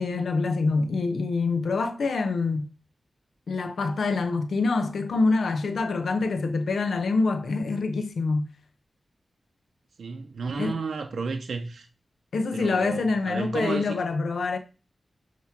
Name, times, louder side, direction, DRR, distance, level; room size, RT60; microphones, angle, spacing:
voice 1, 0.0-2.7 3.5-8.5 10.6-10.7 12.3-14.6, left 3 dB, 90° left, 0.9 m, -25 dB
voice 2, 10.0-11.9 12.5-14.0, right 4 dB, 75° right, 0.7 m, -32 dB
9.4 x 3.2 x 5.8 m
wide cardioid pair, 135°, 0 cm